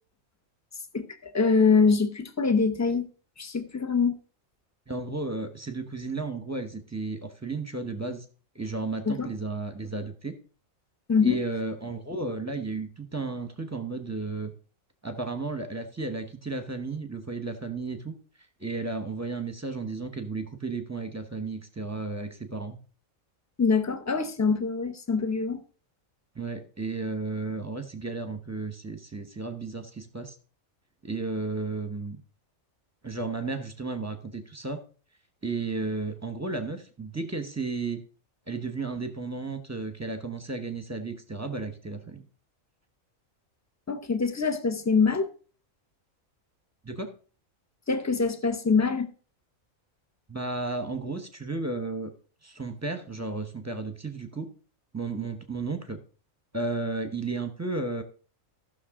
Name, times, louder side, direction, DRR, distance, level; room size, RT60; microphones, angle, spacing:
voice 1, 0.9-3.1 3.4-4.1 9.1-9.3 11.1-11.4 23.6-25.6 43.9-45.3 47.9-49.1, left 5 dB, 20° left, 0.5 m, -24 dB
voice 2, 4.9-8.2 8.5-10.3 11.2-14.5 15.0-18.1 18.6-22.8 26.3-30.3 31.0-32.2 33.0-34.8 35.4-38.0 38.5-42.2 46.8-47.1 50.3-52.1 52.4-54.5 54.9-56.0 56.5-58.0, right 3 dB, 15° right, 0.8 m, -33 dB
14.5 x 6.3 x 3.6 m
omnidirectional pair, 1.4 m